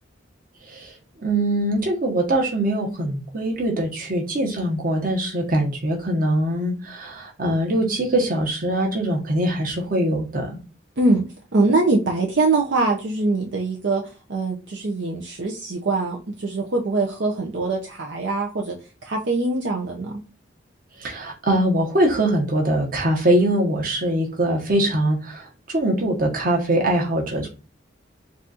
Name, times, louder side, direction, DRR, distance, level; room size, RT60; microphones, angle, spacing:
voice 1, 0.6-10.6 21.0-27.5, right 1 dB, 45° right, 0 dB, 1.2 m, -22 dB
voice 2, 11.5-14.0 14.3-18.8 19.0-20.2, right 3 dB, 65° right, 1 dB, 0.7 m, -23 dB
4.0 x 2.5 x 4.0 m, 0.32 s
head